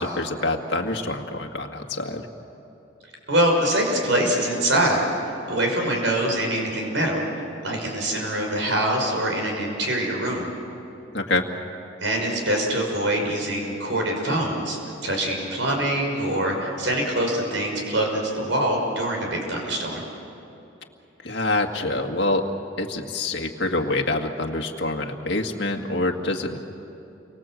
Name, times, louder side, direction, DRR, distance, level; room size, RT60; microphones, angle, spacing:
voice 1, 0.0-2.3 11.1-11.5 21.2-22.5 22.8-26.6, left 2 dB, 65° left, 2 dB, 2.0 m, -26 dB
voice 2, 3.3-7.2 7.6-10.5 12.0-20.0, right 1 dB, 75° right, 1 dB, 6.0 m, -24 dB
30.0 x 24.5 x 7.8 m, 2.9 s
head